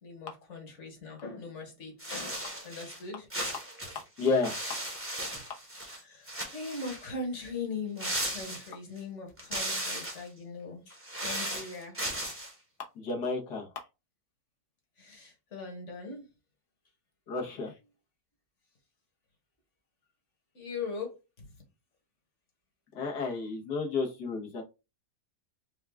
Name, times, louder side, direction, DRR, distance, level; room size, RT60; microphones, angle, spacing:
voice 1, 0.0-3.3 5.0-5.1 5.9-12.0 15.0-16.2 20.5-21.5, left 4 dB, 50° left, 1.5 m, -40 dB
sound 1, 2.0-3.0 3.3-6.0 6.3-7.1 8.0-9.0 9.4-10.3 10.9-12.5, right 1 dB, 10° right, 0.8 m, -36 dB
voice 2, 4.2-4.5 13.0-13.7 17.3-17.7 22.9-24.6, left 4 dB, 85° left, 1.7 m, -31 dB
4.6 x 2.3 x 3.4 m
omnidirectional pair, 1.7 m